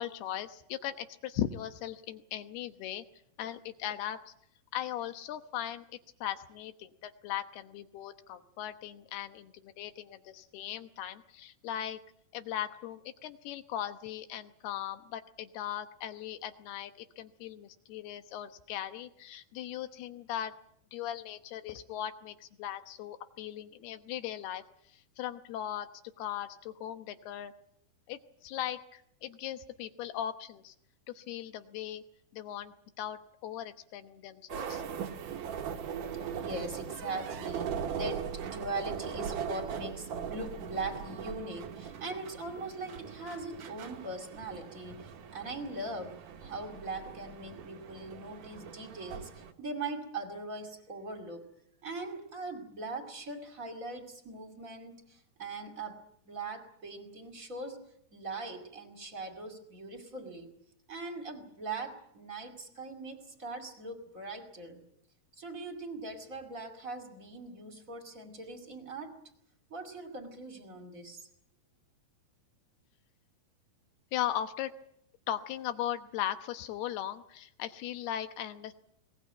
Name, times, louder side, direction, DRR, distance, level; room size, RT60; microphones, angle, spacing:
voice 1, 0.0-3.0 3.4-4.3 4.7-5.8 6.2-12.0 12.3-20.5 20.9-24.6 24.9-25.9 26.2-27.5 28.1-30.7 31.1-32.0 32.3-34.8 74.1-74.7 75.3-78.7, left 11 dB, 80° left, 9 dB, 3.0 m, -38 dB
sound 1, 34.5-49.5, right 7 dB, 65° right, 2.6 m, -40 dB
voice 2, 36.4-51.5 51.8-60.5 60.9-64.8 65.4-69.2 69.7-71.2, right 2 dB, 25° right, 6 dB, 2.1 m, -41 dB
22.0 x 19.0 x 9.0 m, 0.74 s
omnidirectional pair, 4.6 m